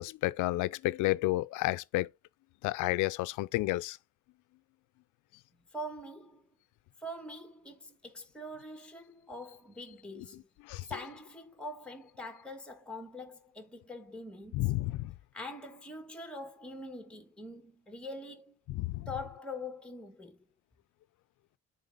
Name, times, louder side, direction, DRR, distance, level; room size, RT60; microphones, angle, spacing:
voice 1, 0.0-2.1 2.6-4.0 10.1-10.9 14.5-15.1 18.7-19.1, left 18 dB, 90° left, 0.5 m, -31 dB
voice 2, 5.7-6.5 7.0-10.5 10.9-14.6 15.3-18.6 19.1-20.4, left 1 dB, 5° left, 1.3 m, -44 dB
9.3 x 3.8 x 3.7 m
cardioid pair, 90°, 30 cm